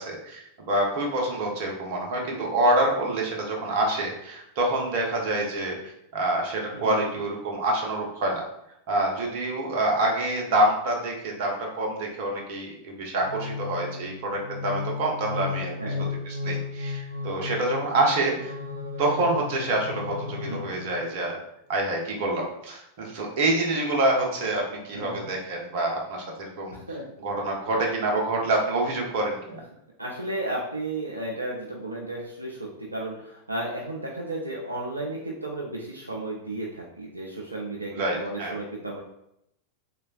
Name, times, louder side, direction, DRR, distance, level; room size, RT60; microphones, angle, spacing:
voice 1, 0.0-8.4 8.9-15.9 16.2-18.5 19.0-21.4 21.7-26.8 27.2-29.6 37.9-38.6, right 1 dB, 50° right, 0 dB, 0.7 m, -27 dB
voice 2, 6.7-7.1 15.8-16.1 20.4-20.7 24.9-25.2 26.7-27.0 29.5-29.6 30.0-39.0, right 2 dB, 85° right, -2 dB, 0.4 m, -34 dB
sound 1, 13.2-21.1, left 4 dB, 80° left, 0.5 m, -34 dB
3.1 x 2.3 x 2.3 m, 0.78 s
figure-of-eight pair, 90°, 0 cm